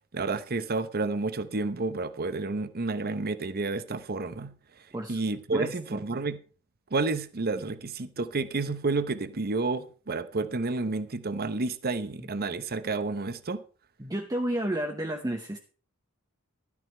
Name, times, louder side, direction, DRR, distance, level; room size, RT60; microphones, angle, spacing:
voice 1, 0.1-4.5 5.1-6.4 6.9-13.6, right 3 dB, 45° right, 0.8 m, -30 dB
voice 2, 5.5-6.0 12.2-12.3 14.0-15.6, right 1 dB, 15° right, 0.9 m, -31 dB
13.0 x 9.6 x 4.4 m
head